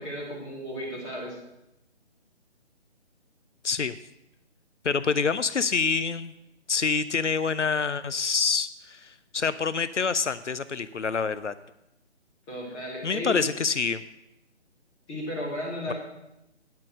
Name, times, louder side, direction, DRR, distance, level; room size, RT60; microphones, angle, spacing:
voice 1, 0.0-1.4 12.5-13.4 15.1-15.9, equal, 15° left, -5 dB, 2.7 m, -34 dB
voice 2, 3.6-4.0 4.8-6.3 6.7-11.5 13.0-14.0 15.9-16.0, left 5 dB, 90° left, 15 dB, 0.6 m, -26 dB
9.7 x 7.9 x 6.4 m, 0.87 s
figure-of-eight pair, 145°, 35 cm